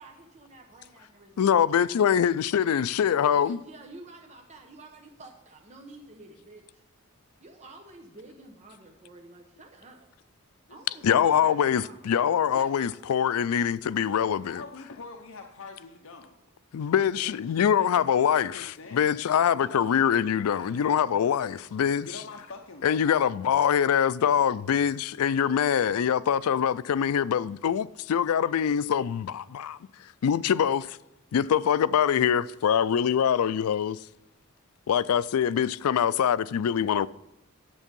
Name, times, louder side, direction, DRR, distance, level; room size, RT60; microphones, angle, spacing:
voice 1, 0.0-1.5 1.9-2.2 3.3-6.8 7.4-10.1 10.7-12.0 12.5-12.7, right 2 dB, 35° right, 1.0 m, -49 dB
voice 2, 1.4-3.6 11.0-14.6 16.7-18.5 18.9-22.1 22.8-29.8 30.2-31.0 31.3-34.0 34.9-37.1, left 8 dB, 85° left, 0.4 m, -24 dB
voice 3, 10.7-11.6 14.4-16.4 17.2-19.1 19.6-21.8 22.0-22.9, left 4 dB, 65° left, 0.8 m, -46 dB
9.9 x 8.2 x 5.3 m
head